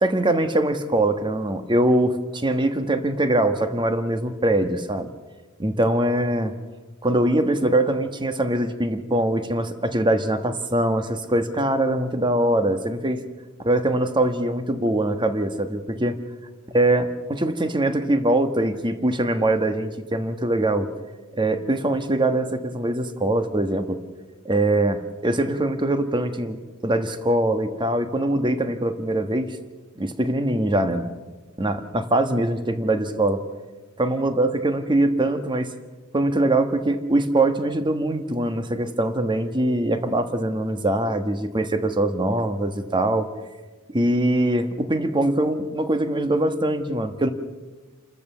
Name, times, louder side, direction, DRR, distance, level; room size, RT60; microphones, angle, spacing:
voice 1, 0.0-5.1 5.6-6.5 7.0-13.2 13.6-16.2 16.7-20.9 21.3-24.0 24.4-26.6 26.8-29.6 30.0-31.1 31.6-33.4 34.0-35.7 36.1-43.3 43.9-47.3, right 1 dB, 20° right, 9 dB, 1.3 m, -22 dB
28.5 x 13.5 x 7.2 m, 1.3 s
head